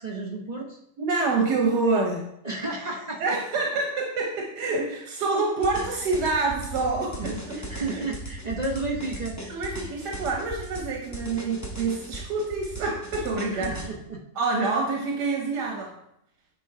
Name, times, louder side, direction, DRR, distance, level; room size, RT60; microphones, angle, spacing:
voice 1, 0.0-0.8 1.9-2.1 2.4-3.4 7.2-9.6 11.2-11.3 13.5-14.2, right 2 dB, 30° right, -2 dB, 0.9 m, -33 dB
voice 2, 1.0-2.2 3.2-7.6 7.9-8.0 9.5-13.8 14.4-15.9, right 3 dB, 85° right, 0 dB, 1.6 m, -27 dB
sound 1, 5.6-13.9, right 1 dB, 15° left, 0.6 m, -37 dB
9.2 x 3.8 x 4.8 m, 0.77 s
omnidirectional pair, 1.7 m